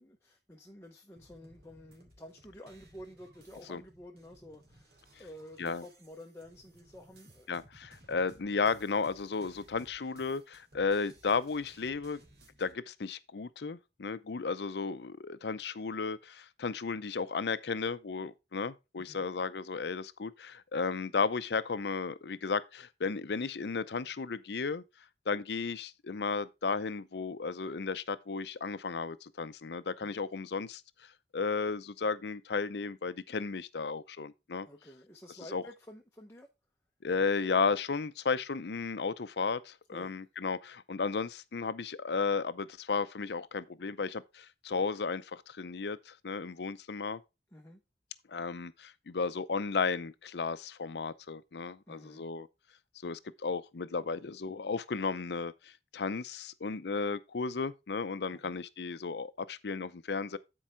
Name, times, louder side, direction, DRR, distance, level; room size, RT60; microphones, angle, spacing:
voice 1, 0.0-7.5 19.0-19.2 30.0-30.2 34.6-36.5 39.9-40.1 47.5-47.8 51.9-52.2 58.3-58.6, left 1 dB, 15° left, 0.9 m, -51 dB
sound 1, 1.2-12.7, right 1 dB, 65° right, 2.4 m, -60 dB
voice 2, 7.5-12.2 12.6-24.8 25.3-30.8 31.3-34.7 35.5-35.6 37.0-47.2 48.3-52.5 53.0-60.4, left 4 dB, 75° left, 0.6 m, -34 dB
10.0 x 4.7 x 4.4 m
head